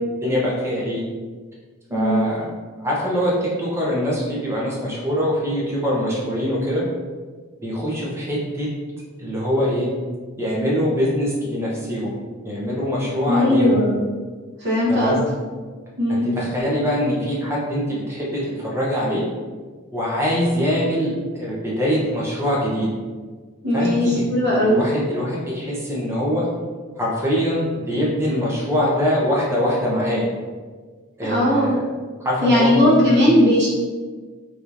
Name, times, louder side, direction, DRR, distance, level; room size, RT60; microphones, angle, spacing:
voice 1, 0.2-1.0 1.9-2.4 2.8-6.8 7.6-8.7 9.2-9.9 10.4-12.1 12.4-13.8 14.9-15.2 16.1-19.2 19.9-22.9 23.7-24.2 24.5-26.5 27.0-30.3 31.2-31.8 32.2-33.2, equal, 10° right, -5 dB, 0.7 m, -23 dB
voice 2, 1.9-2.2 13.3-14.1 14.6-15.2 16.0-16.3 23.6-24.8 31.3-31.7 32.4-33.7, left 1 dB, 55° right, -8 dB, 0.8 m, -18 dB
3.4 x 3.0 x 2.5 m, 1.5 s
head